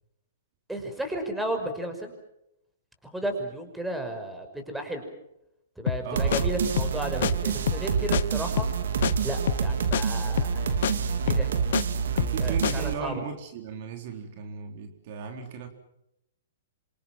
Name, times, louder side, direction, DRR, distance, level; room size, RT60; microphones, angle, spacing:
voice 1, 0.7-2.1 3.1-5.0 5.8-8.7 9.2-10.7 11.3-11.5 12.4-13.2, right 1 dB, 5° right, 5 dB, 5.7 m, -33 dB
sound 1, 5.9-6.1 6.3-6.4 6.8-7.0 7.2-7.3 7.7-7.9 8.1-8.2 8.6-8.8 9.0-9.1 9.5-9.7 9.9-10.0 10.4-10.6 10.8-10.9 11.3-11.8 12.2-12.4 12.6-12.7, left 10 dB, 65° left, 0.9 m, -27 dB
voice 2, 6.0-6.6 11.7-11.8 12.1-15.7, right 6 dB, 50° right, 5 dB, 3.9 m, -37 dB
sound 2, 6.1-12.9, right 6 dB, 75° right, 3.4 m, -27 dB
27.0 x 26.0 x 6.1 m, 0.82 s
hypercardioid pair, 135°, 0 cm